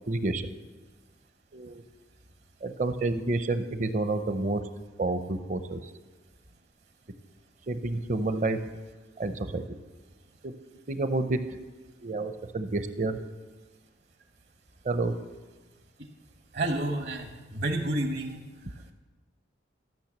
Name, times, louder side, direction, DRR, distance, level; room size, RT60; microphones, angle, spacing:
voice 1, 0.1-0.5 1.5-1.8 2.6-4.6 5.0-5.8 7.7-8.6 9.2-9.8 10.4-10.5 10.9-11.4 12.0-13.2 14.8-15.2, right 2 dB, 40° right, 10 dB, 0.6 m, -29 dB
voice 2, 16.5-18.4, right 1 dB, 65° right, 5 dB, 1.2 m, -30 dB
13.5 x 6.3 x 7.3 m, 1.3 s
head